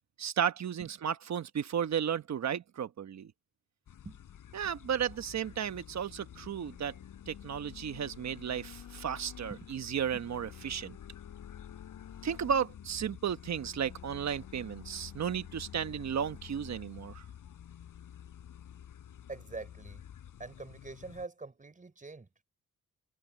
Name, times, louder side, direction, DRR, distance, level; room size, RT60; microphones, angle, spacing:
voice 1, 0.2-3.3 4.5-6.9 7.3-11.0 12.2-17.2, right 8 dB, 60° right, 1.1 m, -34 dB
sound 1, 3.9-21.3, left 9 dB, 85° left, 7.3 m, -49 dB
voice 2, 19.3-20.0 20.4-22.3, right 3 dB, 25° right, 6.0 m, -44 dB
wide cardioid pair, 125°, 31 cm